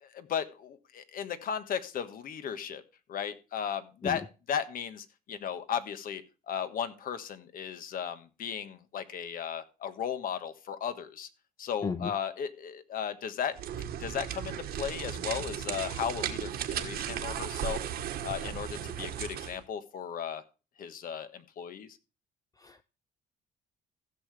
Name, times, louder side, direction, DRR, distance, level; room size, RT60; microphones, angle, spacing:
voice 1, 0.0-2.8 3.1-11.3 11.6-13.6 14.0-17.8 18.2-20.4 20.8-21.9, left 8 dB, 55° left, 11 dB, 1.3 m, -36 dB
voice 2, 4.0-4.2 11.8-12.1 22.6-22.8, left 5 dB, 20° left, 11 dB, 0.5 m, -33 dB
sound 1, 13.5-19.6, right 9 dB, 65° right, 1.4 m, -36 dB
15.5 x 6.8 x 3.4 m, 0.31 s
cardioid pair, 110°, 17 cm